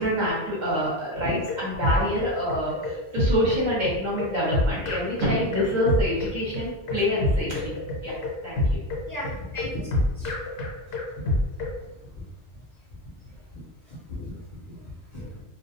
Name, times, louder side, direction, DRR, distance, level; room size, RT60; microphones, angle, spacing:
voice 1, 0.0-7.8 8.0-8.2 8.4-8.8 15.3-15.4, equal, 45° right, -6 dB, 0.8 m, -26 dB
sound 1, 1.1-11.8, left 1 dB, 75° left, 0.9 m, -27 dB
voice 2, 9.1-10.3 13.5-13.6 14.1-14.3 14.6-15.3, left 1 dB, 45° left, -8 dB, 0.6 m, -36 dB
2.3 x 2.2 x 2.7 m, 0.98 s
omnidirectional pair, 1.2 m